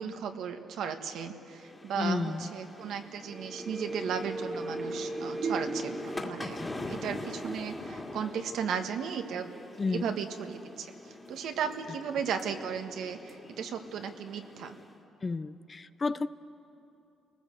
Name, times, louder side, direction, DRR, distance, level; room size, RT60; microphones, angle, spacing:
voice 1, 0.0-6.6 6.9-9.5 9.9-10.9 11.3-14.8, right 7 dB, 80° right, 6 dB, 1.6 m, -35 dB
sound 1, 1.5-15.0, left 2 dB, 15° left, 2.2 m, -43 dB
voice 2, 2.0-2.5 6.4-6.7 9.8-10.1 15.2-16.3, left 4 dB, 30° left, 14 dB, 0.6 m, -32 dB
CR - Space reflection, 3.2-8.9 9.3-9.4, right 2 dB, 50° right, 1.5 m, -39 dB
29.5 x 19.5 x 7.9 m, 2.9 s
cardioid pair, 90°, 0 cm